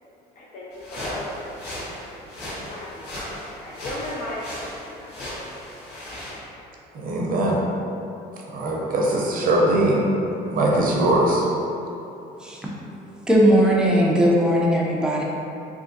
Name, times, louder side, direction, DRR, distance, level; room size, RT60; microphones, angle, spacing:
voice 1, 0.4-2.0 2.4-5.4, left 1 dB, 50° left, -6 dB, 0.4 m, -37 dB
sound 1, 0.7-6.4, left 1 dB, 90° left, 1.0 m, -36 dB
voice 2, 6.9-7.6 8.5-10.1 10.5-11.5, right 1 dB, 55° right, -3 dB, 0.5 m, -21 dB
voice 3, 13.3-15.2, equal, 5° right, -4 dB, 0.5 m, -18 dB
3.3 x 2.5 x 2.6 m, 2.8 s
cardioid pair, 110°, 17 cm